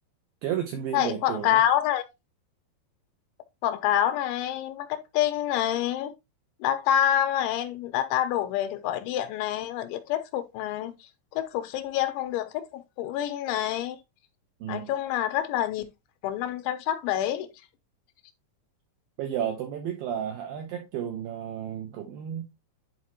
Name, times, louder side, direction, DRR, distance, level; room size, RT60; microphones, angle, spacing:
voice 1, 0.4-1.6 14.6-14.9 19.2-22.5, right 9 dB, 80° right, 2.1 m, -32 dB
voice 2, 0.9-2.0 3.6-6.1 6.6-10.9 11.4-14.0 14.7-15.8 16.2-17.5, left 11 dB, 90° left, 3.1 m, -27 dB
11.0 x 4.3 x 2.9 m
omnidirectional pair, 5.2 m